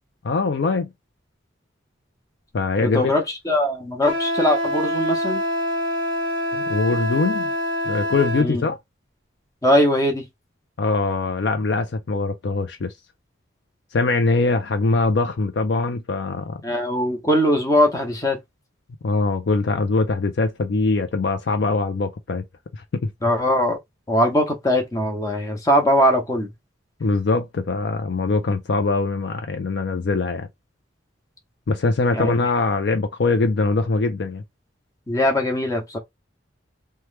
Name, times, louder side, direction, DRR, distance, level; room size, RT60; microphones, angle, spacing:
voice 1, 0.2-0.9 2.5-3.1 6.5-7.5 7.9-8.8 10.8-12.9 13.9-16.6 19.0-22.4 22.7-23.1 27.0-30.5 31.7-34.4, left 3 dB, 60° left, 0.4 m, -22 dB
voice 2, 2.8-5.4 8.4-8.6 9.6-10.3 16.6-18.4 23.2-23.8 24.1-26.5 32.1-32.3 35.1-36.0, equal, 15° left, 0.8 m, -21 dB
Wind instrument woodwind instrument, 4.0-8.5, left 1 dB, 25° right, 0.8 m, -25 dB
3.0 x 2.2 x 3.2 m
head